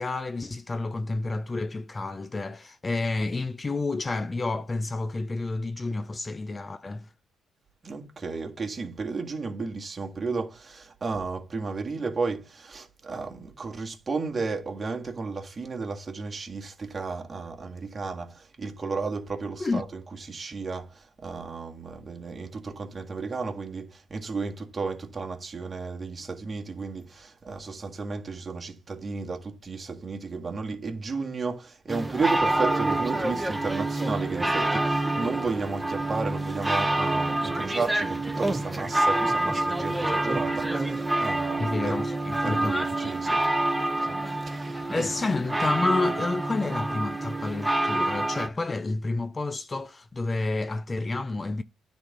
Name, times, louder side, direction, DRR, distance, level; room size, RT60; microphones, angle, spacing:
voice 1, 0.0-7.1 19.6-19.8 41.6-43.1 44.7-51.6, left 3 dB, 25° left, 0.5 m, -30 dB
voice 2, 7.8-42.0 42.4-43.4 44.0-44.2 44.4-45.1, right 4 dB, 30° right, 1.8 m, -33 dB
sound 1, 31.9-48.5, right 2 dB, 10° right, 1.0 m, -27 dB
9.7 x 4.2 x 5.2 m
cardioid pair, 90°, 0 cm